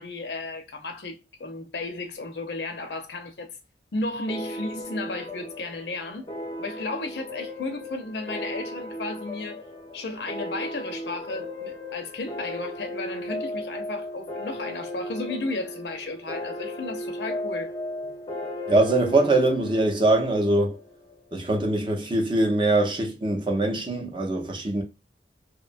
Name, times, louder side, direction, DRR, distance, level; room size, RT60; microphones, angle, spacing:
voice 1, 0.0-3.6 3.9-6.3 6.6-9.6 9.9-17.7, left 2 dB, 75° left, 0.6 m, -34 dB
sound 1, 4.3-21.4, left 1 dB, 25° left, 0.5 m, -36 dB
voice 2, 18.7-20.8 21.3-24.8, right 2 dB, 25° right, 0.5 m, -22 dB
2.8 x 2.1 x 2.5 m
head